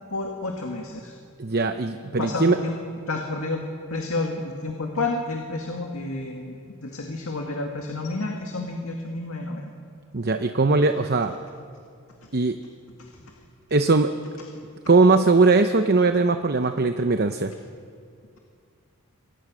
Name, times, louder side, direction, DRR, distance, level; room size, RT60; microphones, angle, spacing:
voice 1, 0.1-1.1 2.2-2.8 3.1-9.7, left 2 dB, 75° left, 2 dB, 2.1 m, -30 dB
voice 2, 1.4-2.6 10.1-11.3 12.3-12.6 13.7-14.1 14.9-17.5, right 3 dB, 45° right, 8 dB, 0.8 m, -20 dB
28.0 x 23.0 x 6.3 m, 2.3 s
head